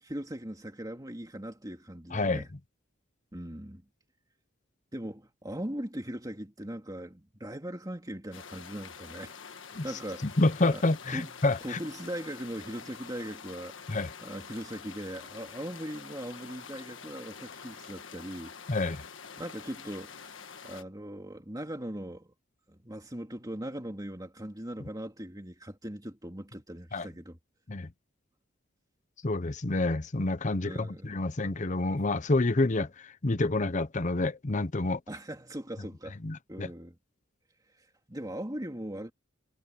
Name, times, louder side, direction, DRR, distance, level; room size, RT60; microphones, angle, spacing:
voice 1, 0.0-2.5 3.3-3.8 4.9-10.3 10.7-10.8 11.1-11.3 11.6-13.7 14.2-18.5 19.4-20.4 20.6-22.3 22.7-27.4 30.6-31.1 35.1-36.2 36.5-37.0 37.8-39.1, right 1 dB, 20° right, 2.8 m, -40 dB
voice 2, 2.1-2.4 9.7-9.8 10.2-11.8 13.9-14.1 18.7-19.0 26.9-27.1 27.7-27.9 29.2-35.0 36.2-36.7, left 2 dB, 35° left, 0.8 m, -28 dB
sound 1, 8.3-20.8, left 6 dB, 65° left, 1.5 m, -47 dB
head